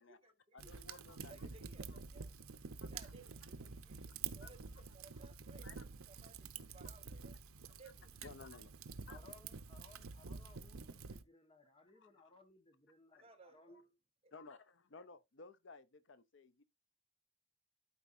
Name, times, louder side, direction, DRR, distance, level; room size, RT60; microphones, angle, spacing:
voice 1, 0.0-0.8 1.3-2.3 2.9-7.4 7.8-8.1 8.6-8.7 13.2-13.8 14.2-14.3, right 4 dB, 25° right, 1.1 m, -62 dB
voice 2, 0.5-1.5 1.9-2.0 2.8-3.1 4.4-4.5 5.6-5.8 6.8-6.9 7.7-7.8 8.2-9.2 12.0-12.1 14.3-16.6, left 4 dB, 55° left, 0.6 m, -57 dB
Fire, 0.6-11.2, right 5 dB, 80° right, 0.7 m, -49 dB
voice 3, 9.1-13.9, left 3 dB, 25° left, 1.2 m, -63 dB
12.5 x 4.6 x 2.5 m
head